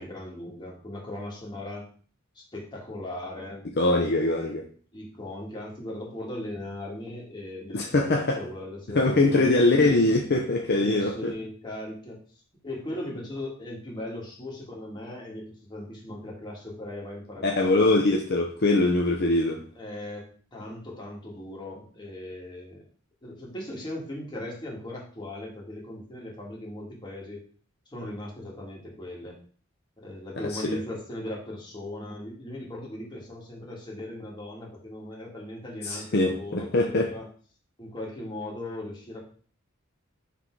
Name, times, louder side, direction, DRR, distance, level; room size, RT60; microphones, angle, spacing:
voice 1, 0.0-1.8 2.4-3.6 4.9-9.5 10.8-12.2 12.6-18.0 19.8-22.8 23.2-27.4 27.9-29.4 30.0-37.3 37.8-39.2, left 1 dB, 20° left, 2.0 m, -38 dB
voice 2, 3.8-4.7 7.7-8.4 8.9-11.3 17.4-19.6 30.5-30.8 35.8-37.1, left 2 dB, 55° left, 0.7 m, -23 dB
5.9 x 3.7 x 4.7 m
head